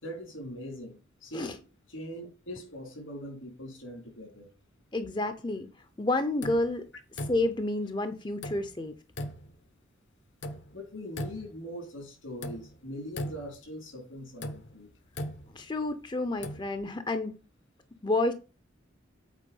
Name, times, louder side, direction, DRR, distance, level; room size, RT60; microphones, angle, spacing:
voice 1, 0.0-1.6 1.9-4.5 10.7-14.9, equal, 85° left, 4.0 m, -41 dB
voice 2, 4.9-5.7 6.0-6.9 7.3-8.9 15.5-17.3 18.0-18.3, left 2 dB, 25° left, 0.6 m, -29 dB
sound 1, 6.4-6.8 7.2-7.7 8.4-8.8 9.2-9.6 10.4-10.7 11.1-11.7 12.4-12.8 13.1-13.7 14.4-15.9 16.3-16.7, left 1 dB, 65° left, 1.0 m, -39 dB
8.2 x 4.8 x 5.4 m
head